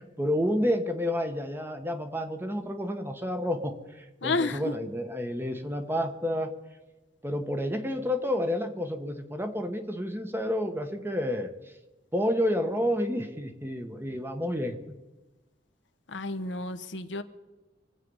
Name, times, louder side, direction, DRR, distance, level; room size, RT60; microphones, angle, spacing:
voice 1, 0.0-6.5 7.2-11.5 12.1-14.8, equal, 10° right, 6 dB, 1.4 m, -30 dB
voice 2, 4.2-4.8 16.1-17.2, left 3 dB, 80° left, 8 dB, 1.1 m, -31 dB
25.5 x 8.5 x 5.5 m, 1.1 s
head